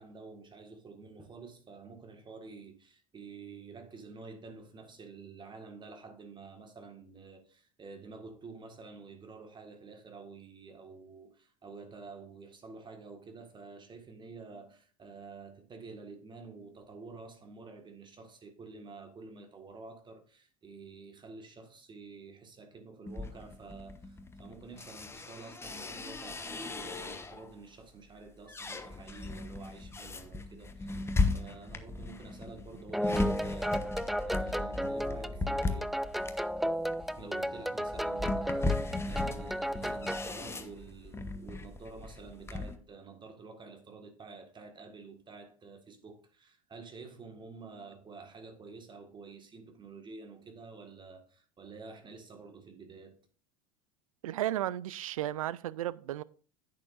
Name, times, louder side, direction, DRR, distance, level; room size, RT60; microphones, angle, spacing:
voice 1, 0.0-36.0 37.2-53.2, right 4 dB, 25° right, 1.8 m, -49 dB
sound 1, 23.1-27.6 28.0-42.8, left 3 dB, 15° left, 1.1 m, -37 dB
sound 2, 32.9-40.3, equal, ahead, 0.4 m, -34 dB
voice 2, 54.2-56.2, right 13 dB, 75° right, 0.4 m, -34 dB
10.5 x 8.7 x 2.6 m
hypercardioid pair, 80°, 18 cm